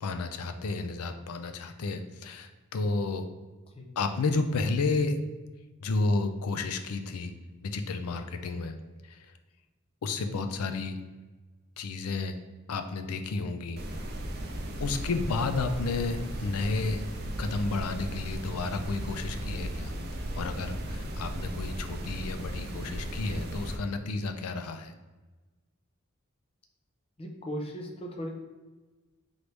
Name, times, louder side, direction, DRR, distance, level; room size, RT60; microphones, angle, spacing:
voice 1, 0.0-3.3 4.0-5.2 5.8-7.3 7.6-8.8 9.0-9.3 10.0-11.0 11.8-12.4 12.7-13.8 14.8-17.0 17.4-19.9 20.3-24.9, left 3 dB, 85° left, 8 dB, 0.4 m, -31 dB
sound 1, 13.8-23.8, right 1 dB, 45° right, 0.5 m, -36 dB
voice 2, 27.2-28.3, equal, 25° left, 1 dB, 0.5 m, -37 dB
3.9 x 3.1 x 3.3 m, 1.2 s
head